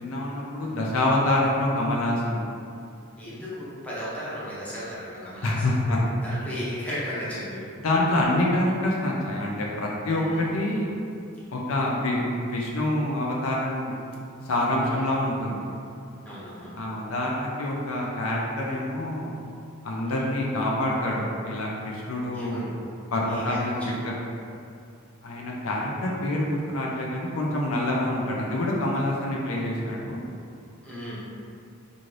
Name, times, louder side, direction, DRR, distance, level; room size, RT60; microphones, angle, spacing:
voice 1, 0.0-2.4 5.4-6.0 7.8-10.9 11.5-14.0 14.4-15.6 16.8-19.4 19.8-22.7 23.1-24.1 25.2-30.2, left 1 dB, 70° left, -3 dB, 0.4 m, -26 dB
voice 2, 3.2-5.6 6.2-7.7 10.1-10.5 14.8-15.0 16.2-16.7 20.1-20.2 22.3-23.9 30.8-31.2, equal, 5° left, -10 dB, 0.7 m, -36 dB
2.6 x 2.5 x 3.1 m, 2.5 s
head